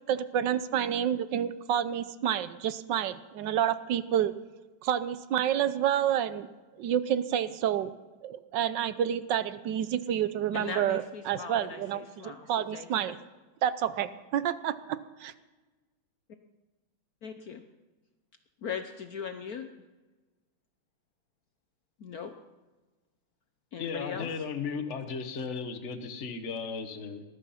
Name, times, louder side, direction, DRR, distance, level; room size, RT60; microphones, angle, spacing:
voice 1, 0.1-4.3 4.8-6.5 6.8-7.9 8.2-13.2 13.6-15.3, right 10 dB, 70° right, 14 dB, 1.2 m, -29 dB
voice 2, 10.5-12.9 17.2-17.6 18.6-19.7 22.0-22.3 23.7-24.3, left 6 dB, 60° left, 8 dB, 1.0 m, -39 dB
voice 3, 23.8-27.2, left 5 dB, 40° left, 7 dB, 1.4 m, -35 dB
19.5 x 12.0 x 5.7 m, 1.2 s
omnidirectional pair, 2.3 m